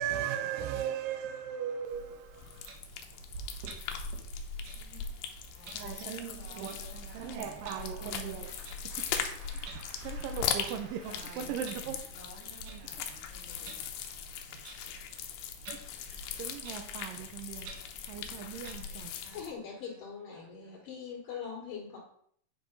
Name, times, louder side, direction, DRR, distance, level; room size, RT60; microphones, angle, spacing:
voice 1, 0.0-2.7 5.7-8.5 10.0-12.1 16.1-17.7 18.1-19.1, right 9 dB, 80° right, 2.1 m, -38 dB
Clock, 1.8-18.7, right 3 dB, 60° right, 2.8 m, -50 dB
sound 1, 2.3-19.5, left 7 dB, 85° left, 2.9 m, -40 dB
voice 2, 4.8-5.2 5.5-5.8 6.4-7.7 8.4-14.6 18.2-19.4 19.9-20.0 20.3-20.9, right 3 dB, 40° right, 2.0 m, -54 dB
voice 3, 19.3-22.0, left 6 dB, 60° left, 3.1 m, -42 dB
9.4 x 4.9 x 5.4 m
omnidirectional pair, 4.6 m